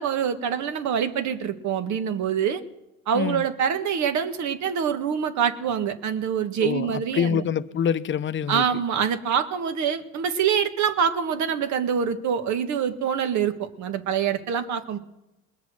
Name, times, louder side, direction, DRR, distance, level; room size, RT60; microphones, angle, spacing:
voice 1, 0.0-2.6 3.1-7.4 8.5-15.0, right 8 dB, 55° right, 1.6 m, -25 dB
voice 2, 3.1-3.5 6.6-8.6, left 8 dB, 35° left, 0.8 m, -26 dB
20.5 x 7.3 x 6.3 m
hypercardioid pair, 80°, 34 cm